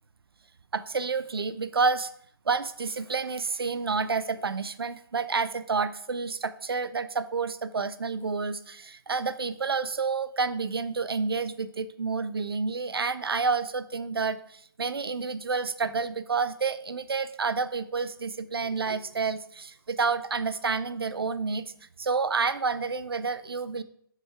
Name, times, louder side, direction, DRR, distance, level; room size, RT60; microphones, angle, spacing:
voice 1, 0.7-2.1 2.5-21.7 22.0-23.8, right 4 dB, 75° right, 14 dB, 0.6 m, -29 dB
11.0 x 4.6 x 3.5 m, 0.66 s
figure-of-eight pair, 130°, 13 cm